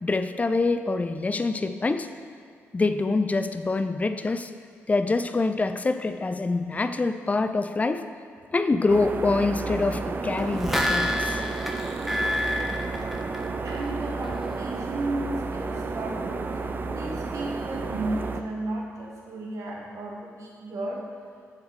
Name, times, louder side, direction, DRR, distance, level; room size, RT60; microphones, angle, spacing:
voice 1, 0.0-2.1 2.7-4.5 4.9-8.0 8.5-11.4, left 3 dB, 25° left, 9 dB, 0.4 m, -25 dB
sound 1, 8.9-18.4, right 3 dB, 40° right, 0.5 m, -32 dB
sound 2, 10.4-13.9 14.2-14.3, left 1 dB, 5° right, 0.7 m, -28 dB
voice 2, 13.6-16.5 16.9-21.0, right 2 dB, 75° right, -2 dB, 1.4 m, -34 dB
8.3 x 4.8 x 4.8 m, 2.2 s
cardioid pair, 75°, 5 cm